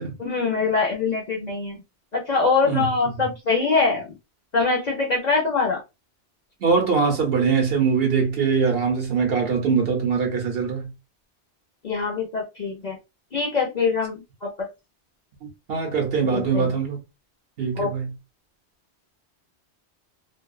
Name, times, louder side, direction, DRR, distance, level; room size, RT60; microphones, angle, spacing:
voice 1, 0.2-1.8 2.1-4.1 4.5-5.8 11.8-13.0 13.3-14.7 16.2-16.7 17.7-17.9, left 4 dB, 50° left, 0.5 m, -23 dB
voice 2, 6.6-10.9 15.7-17.0 17.6-18.1, right 5 dB, 65° right, 0.9 m, -22 dB
2.6 x 2.1 x 2.3 m
omnidirectional pair, 1.1 m